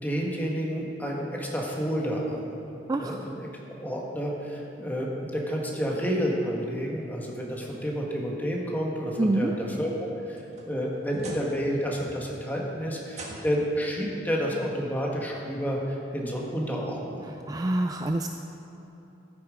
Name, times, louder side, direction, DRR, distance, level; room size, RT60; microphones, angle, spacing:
voice 1, 0.0-2.6 3.0-3.5 3.8-17.3, equal, 10° left, -2 dB, 1.6 m, -30 dB
voice 2, 2.9-3.2 9.2-9.5 17.5-18.3, right 2 dB, 20° right, 5 dB, 0.3 m, -26 dB
sound 1, 10.1-11.7 12.0-12.4 13.1-13.8 15.0-15.1 15.7-15.8 17.4-17.5, right 2 dB, 40° right, 1.6 m, -44 dB
13.5 x 8.7 x 5.0 m, 3.0 s
head